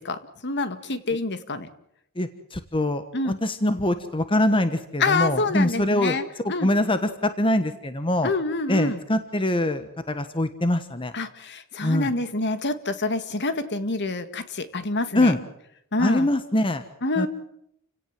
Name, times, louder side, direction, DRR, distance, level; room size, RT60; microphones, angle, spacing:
voice 1, 0.0-1.7 3.1-3.4 5.0-6.7 8.2-9.0 11.1-15.3 15.9-16.3 17.0-17.3, left 3 dB, 55° left, 11 dB, 1.9 m, -27 dB
voice 2, 2.2-3.0 3.4-6.2 6.4-8.3 8.7-11.1 11.8-12.1 15.1-15.4 16.0-16.8 17.2-17.3, left 1 dB, 25° left, 10 dB, 1.2 m, -23 dB
29.5 x 17.5 x 7.6 m, 0.76 s
head